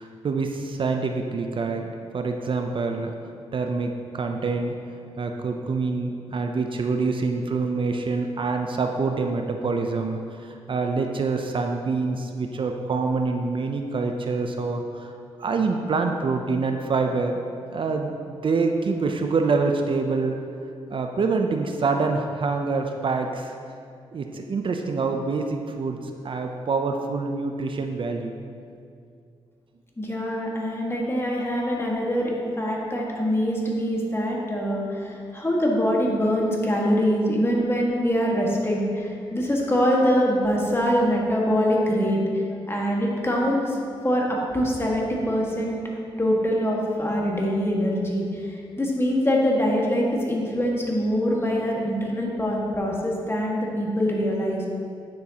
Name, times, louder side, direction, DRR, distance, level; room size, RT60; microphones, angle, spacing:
voice 1, 0.0-3.1 3.5-4.8 5.2-15.1 15.4-17.4 17.7-20.4 20.9-23.5 24.1-28.4, right 4 dB, 50° right, 4 dB, 0.5 m, -26 dB
voice 2, 30.0-43.8 44.0-45.8 46.2-54.7, equal, 20° left, -2 dB, 1.7 m, -24 dB
9.6 x 6.4 x 2.9 m, 2.4 s
cardioid pair, 55°, 11 cm